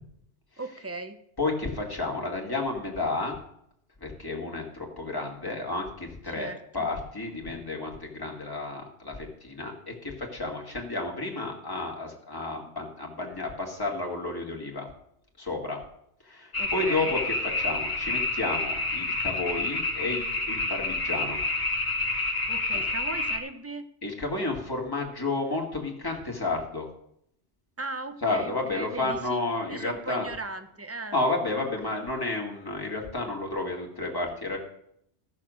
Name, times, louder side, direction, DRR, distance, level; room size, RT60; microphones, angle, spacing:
voice 1, 0.6-1.2 6.3-6.9 16.6-17.2 22.5-23.9 27.8-29.4 29.7-31.2, right 3 dB, 15° right, 9 dB, 0.6 m, -38 dB
voice 2, 1.4-3.4 4.0-14.9 15.4-15.8 16.2-17.2 17.6-21.4 22.1-22.4 22.7-22.8 24.0-26.9 28.2-30.3 31.1-34.6, left 2 dB, 20° left, -1 dB, 1.9 m, -31 dB
sound 1, 16.5-23.4, left 2 dB, 60° left, 1.8 m, -29 dB
14.0 x 6.5 x 6.3 m, 0.73 s
omnidirectional pair, 1.2 m